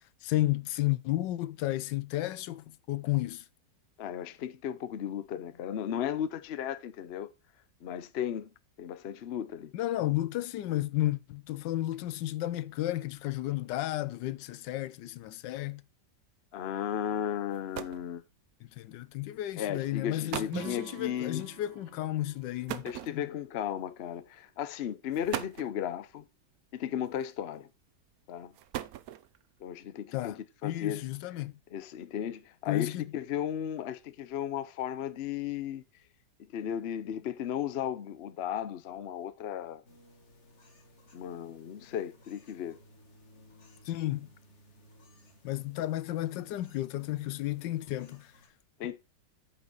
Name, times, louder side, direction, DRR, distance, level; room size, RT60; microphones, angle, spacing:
voice 1, 0.2-3.4 9.7-15.8 18.8-23.2 30.1-31.5 32.7-33.1 43.9-44.3 45.4-48.3, left 15 dB, 80° left, 1.3 m, -32 dB
voice 2, 4.0-7.3 7.8-8.5 8.8-9.7 16.5-18.2 19.6-21.4 22.8-26.3 26.7-27.7 28.3-28.5 29.6-31.0 31.7-35.8 36.5-39.8 41.1-42.8 48.8-49.0, left 9 dB, 60° left, 0.6 m, -35 dB
sound 1, 17.2-17.3 17.5-18.1 19.1-19.3 20.0-20.1 20.3-20.7 22.7-23.5 24.5-24.6 25.1-25.8 27.1-27.5 28.4-29.4, right 12 dB, 65° right, 1.0 m, -39 dB
Acoustic guitar / Strum, 20.5-23.8, right 10 dB, 85° right, 1.6 m, -47 dB
sound 2, 39.8-48.5, left 1 dB, 40° left, 1.9 m, -59 dB
8.9 x 5.8 x 4.0 m
omnidirectional pair, 1.9 m